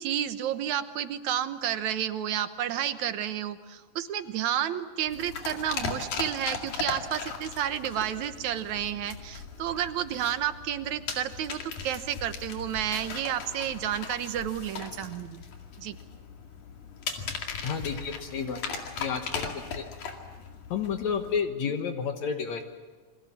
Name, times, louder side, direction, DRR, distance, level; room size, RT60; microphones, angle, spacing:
voice 1, 0.0-15.4 15.8-16.0, right 10 dB, 75° right, 10 dB, 2.4 m, -31 dB
sound 1, 5.1-21.4, left 5 dB, 85° left, 3.8 m, -38 dB
voice 2, 17.6-18.6 19.0-19.8 20.7-22.6, left 6 dB, 70° left, 6 dB, 2.6 m, -31 dB
28.5 x 23.0 x 7.4 m, 1.4 s
omnidirectional pair, 3.3 m